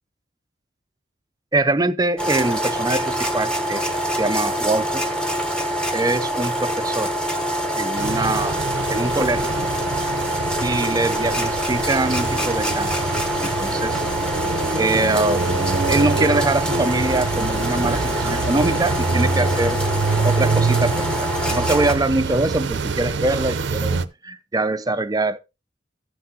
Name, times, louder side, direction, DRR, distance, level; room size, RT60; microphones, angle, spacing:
voice 1, 1.5-3.9 4.1-5.0 5.9-7.1 7.8-8.6 8.9-9.5 10.6-13.1 13.4-14.0 14.7-15.5 15.9-19.8 20.2-25.4, right 2 dB, 20° right, 0.5 m, -23 dB
sound 1, 2.2-21.9, equal, 5° left, 1.0 m, -25 dB
sound 2, 8.0-24.0, right 4 dB, 65° right, 0.6 m, -25 dB
15.0 x 5.8 x 2.8 m
head